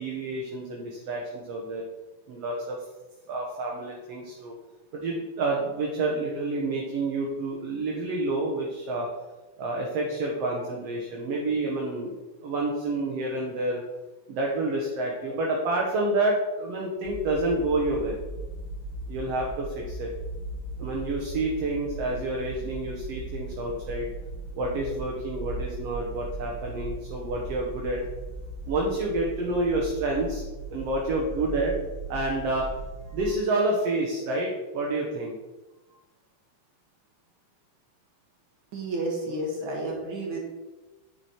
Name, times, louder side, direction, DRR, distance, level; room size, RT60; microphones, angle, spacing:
voice 1, 0.0-1.8 2.3-2.8 3.3-4.5 4.9-9.1 9.6-12.2 12.4-13.8 14.3-18.2 19.1-20.1 20.8-24.1 24.6-28.0 28.7-30.4 30.7-31.7 32.1-32.7 33.1-35.4, right 2 dB, 60° right, -1 dB, 2.0 m, -28 dB
sound 1, 17.0-33.3, right 2 dB, 50° left, 1.6 m, -38 dB
voice 2, 38.7-40.4, right 1 dB, 40° right, -2 dB, 2.7 m, -31 dB
9.7 x 6.3 x 4.4 m, 1.2 s
omnidirectional pair, 3.6 m